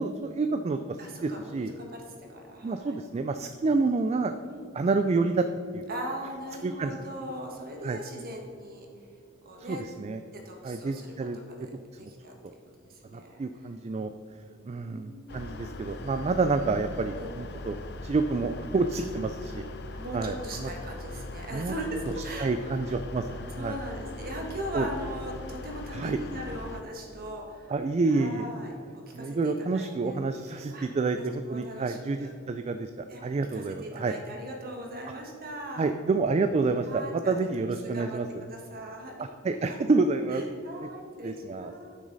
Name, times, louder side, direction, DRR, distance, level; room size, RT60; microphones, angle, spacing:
voice 1, 0.0-1.7 2.6-4.3 4.7-5.4 5.7-5.9 6.6-6.9 7.8-8.0 9.7-10.2 10.6-11.4 11.9-12.1 13.1-14.1 14.7-19.6 20.1-20.7 21.5-21.7 22.4-23.8 24.7-24.9 25.9-26.2 27.7-28.5 29.1-32.9 33.2-34.1 35.8-38.4 39.2-40.4 40.8-40.9 41.2-41.7, right 3 dB, 30° right, 8 dB, 0.3 m, -28 dB
voice 2, 1.0-2.0 2.3-2.9 4.4-4.7 5.9-8.9 9.4-9.8 10.3-11.7 12.0-12.3 12.8-13.4 14.5-15.6 17.1-17.3 20.0-22.5 22.9-23.0 23.3-27.7 28.1-30.2 30.5-30.8 31.2-32.3 33.1-33.2 33.5-35.9 36.8-37.3 37.9-38.2 38.5-39.2 39.6-39.8 40.3-41.9, right 1 dB, 50° right, 1 dB, 1.5 m, -39 dB
sound 1, 15.3-26.8, left 2 dB, 55° left, 0.6 m, -40 dB
12.0 x 6.2 x 4.0 m, 2.5 s
head